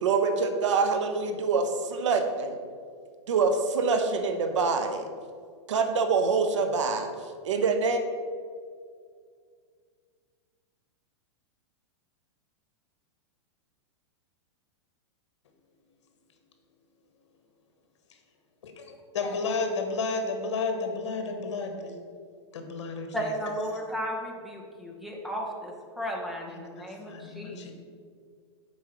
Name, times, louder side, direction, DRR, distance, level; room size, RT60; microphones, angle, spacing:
voice 1, 0.0-2.5 3.3-5.1 5.7-7.1 7.4-8.0, right 4 dB, 85° right, 7 dB, 1.0 m, -25 dB
voice 2, 19.1-22.0 22.5-23.5 26.5-27.7, left 4 dB, 75° left, 5 dB, 1.4 m, -32 dB
voice 3, 23.1-27.7, equal, ahead, -1 dB, 1.0 m, -34 dB
7.1 x 4.6 x 6.1 m, 2.1 s
supercardioid pair, 155°, 15 cm